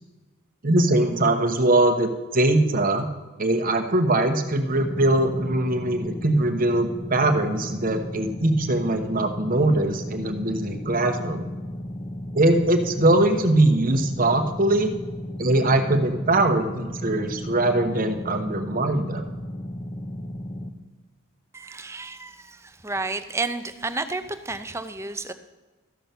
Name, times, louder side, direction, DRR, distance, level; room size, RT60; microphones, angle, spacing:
voice 1, 0.6-3.1 3.4-11.4 12.3-14.9 15.4-19.2, right 2 dB, 40° right, 6 dB, 0.9 m, -21 dB
sound 1, 4.7-20.7, left 1 dB, 20° left, 0.7 m, -35 dB
voice 2, 21.5-25.3, right 3 dB, 15° right, 10 dB, 0.5 m, -31 dB
13.5 x 6.0 x 6.8 m, 1.2 s
head